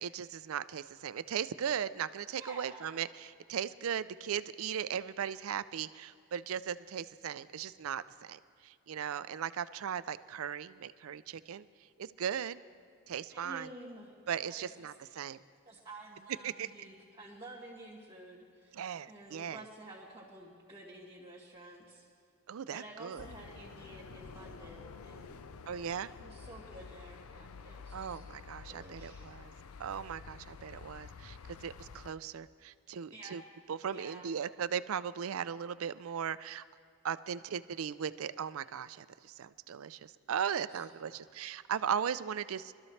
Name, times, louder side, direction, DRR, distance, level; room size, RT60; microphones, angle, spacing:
voice 1, 0.0-11.6 12.0-12.6 13.1-13.7 14.3-15.4 16.4-16.7 18.7-19.6 22.5-23.2 25.7-26.1 27.9-29.5 29.8-33.4 33.7-36.6 37.0-42.8, right 8 dB, 80° right, 15 dB, 0.4 m, -38 dB
voice 2, 2.3-2.9 13.3-14.1 14.4-14.7 15.1-15.2 15.6-18.8 19.1-22.1 22.7-25.4 26.2-28.2 28.7-29.3 33.1-33.4 33.9-34.3 40.7-41.3, right 2 dB, 20° right, -7 dB, 2.2 m, -51 dB
sound 1, 23.2-32.1, left 5 dB, 90° left, 0.5 m, -50 dB
24.0 x 13.0 x 3.2 m, 2.2 s
head